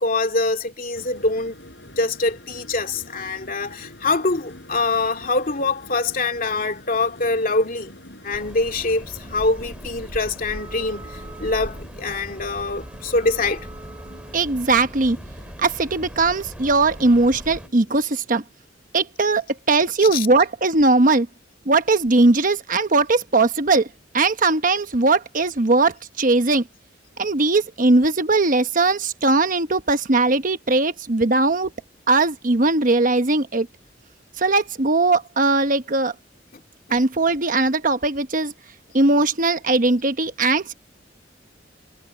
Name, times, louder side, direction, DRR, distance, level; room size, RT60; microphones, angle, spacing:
voice 1, 0.0-1.6 2.0-7.9 8.2-13.7 20.1-20.3 36.5-36.6, left 3 dB, 50° left, 2.5 m, -24 dB
sound 1, 0.9-18.3, left 1 dB, 70° left, 7.1 m, -46 dB
sound 2, 8.3-17.7, equal, 5° right, 2.8 m, -39 dB
Wind instrument woodwind instrument, 10.5-14.6, right 3 dB, 25° right, 5.3 m, -45 dB
voice 2, 14.3-15.2 15.6-18.4 18.9-21.3 21.7-23.9 24.1-26.7 27.2-31.7 32.1-33.7 34.4-36.1 36.9-38.5 38.9-40.7, right 3 dB, 45° right, 1.1 m, -19 dB
head